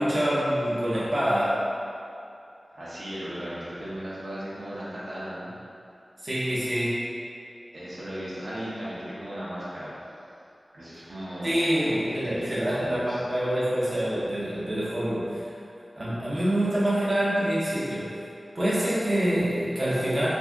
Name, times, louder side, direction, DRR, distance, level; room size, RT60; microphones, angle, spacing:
voice 1, 0.0-1.6 6.2-7.1 11.4-15.3 16.0-18.1 18.5-20.3, right 1 dB, 40° right, -10 dB, 0.7 m, -26 dB
voice 2, 2.7-5.5 7.7-9.9 10.7-13.2 18.4-18.5, equal, 70° right, -10 dB, 0.8 m, -36 dB
2.6 x 2.5 x 3.5 m, 2.6 s
wide cardioid pair, 75°, 0 cm